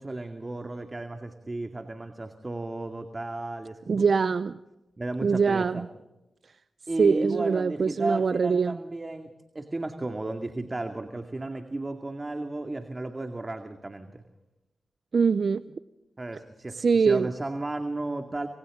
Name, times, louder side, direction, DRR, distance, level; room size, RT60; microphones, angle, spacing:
voice 1, 0.0-4.0 5.0-5.8 6.9-14.2 16.2-18.5, right 2 dB, 30° right, 2.2 m, -34 dB
voice 2, 3.9-4.6 5.2-5.9 7.0-8.8 15.1-15.6 16.7-17.3, right 5 dB, 60° right, 0.6 m, -23 dB
27.0 x 26.5 x 3.8 m
cardioid pair, 55°, 0 cm